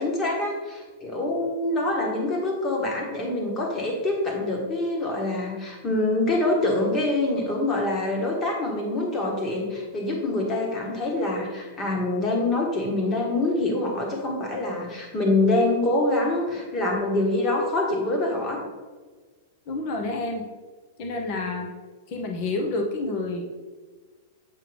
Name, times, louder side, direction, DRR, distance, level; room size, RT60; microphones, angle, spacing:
voice 1, 0.0-18.7, left 2 dB, 25° left, 0 dB, 1.5 m, -25 dB
voice 2, 19.7-20.4 21.0-21.7 22.1-23.4, left 2 dB, 50° left, 2 dB, 1.0 m, -29 dB
7.6 x 5.0 x 3.4 m, 1.4 s
supercardioid pair, 140°, 0 cm